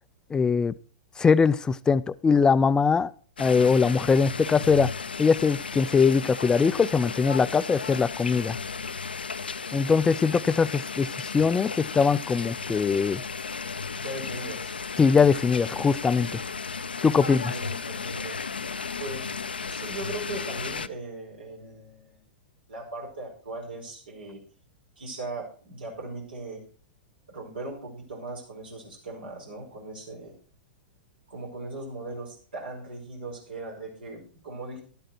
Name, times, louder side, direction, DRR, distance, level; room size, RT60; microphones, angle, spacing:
voice 1, 0.3-0.7 1.2-3.1 3.4-4.9 5.2-8.6 9.7-13.2 15.0-16.4 17.0-17.5, left 5 dB, 15° left, 16 dB, 0.4 m, -22 dB
sound 1, 3.4-20.9, left 5 dB, 85° left, 0.5 m, -34 dB
voice 2, 13.9-14.7 17.2-18.4 19.0-22.2 22.7-24.4 25.0-26.6 27.3-30.3 31.3-34.8, right 2 dB, 75° right, -1 dB, 4.7 m, -39 dB
11.0 x 8.7 x 4.5 m, 0.41 s
hypercardioid pair, 105°, 5 cm